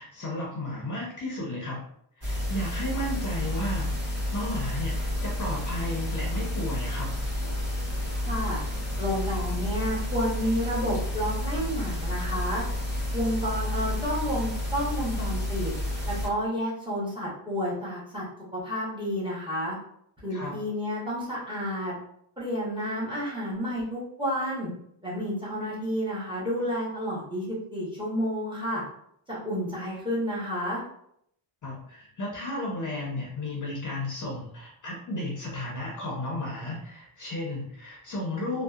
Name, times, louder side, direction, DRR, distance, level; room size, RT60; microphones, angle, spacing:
voice 1, 0.0-1.8 2.2-7.1 20.3-20.5 31.6-38.6, left 1 dB, 40° left, -3 dB, 0.5 m, -34 dB
sound 1, 2.2-16.3, left 1 dB, 30° right, 1.1 m, -30 dB
voice 2, 8.2-8.6 9.0-12.6 13.1-15.7 16.0-18.2 18.5-19.8 20.2-21.9 22.4-24.7 25.0-28.8 29.3-30.8, equal, 10° right, -6 dB, 0.7 m, -30 dB
2.6 x 2.0 x 2.3 m, 0.71 s
wide cardioid pair, 155°, 50 cm